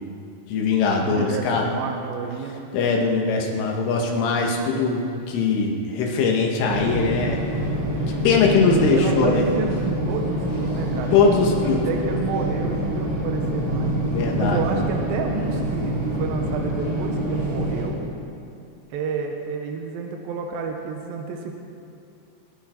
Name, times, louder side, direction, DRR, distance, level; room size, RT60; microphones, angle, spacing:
voice 1, 0.5-1.7 2.7-7.4 8.1-9.5 11.1-11.9 14.1-14.6, left 4 dB, 85° left, 0 dB, 4.1 m, -21 dB
voice 2, 1.0-2.7 8.6-11.2 11.9-13.9 14.4-18.0 18.9-21.6, right 5 dB, 75° right, 2 dB, 2.2 m, -30 dB
sound 1, 6.6-17.8, equal, 50° right, 6.5 m, -26 dB
24.0 x 12.0 x 4.5 m, 2.6 s
omnidirectional pair, 5.6 m